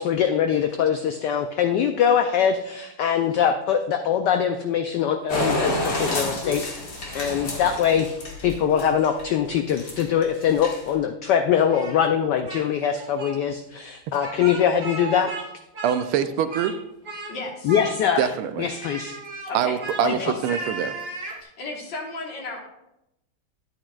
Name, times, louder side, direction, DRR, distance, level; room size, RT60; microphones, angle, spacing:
voice 1, 0.0-6.6 7.1-8.1 8.4-15.3 17.6-18.3 18.6-19.1 20.0-20.1, left 8 dB, 80° left, 7 dB, 0.9 m, -22 dB
sound 1, 5.3-9.2 9.7-10.2 10.5-10.9, left 1 dB, 45° left, 1.9 m, -28 dB
Speech, 11.7-12.7 12.9-13.3 14.1-15.5 15.7-16.8 17.0-17.3 17.7-18.3 18.7-21.4, right 3 dB, 35° right, 1.2 m, -35 dB
voice 2, 15.8-16.7 18.2-18.7 19.5-20.9, right 9 dB, 80° right, 11 dB, 1.4 m, -24 dB
voice 3, 17.3-17.8 19.5-19.8 20.1-20.6 21.4-22.7, left 2 dB, 60° left, 0 dB, 2.1 m, -34 dB
11.0 x 8.8 x 2.3 m, 0.86 s
omnidirectional pair, 2.4 m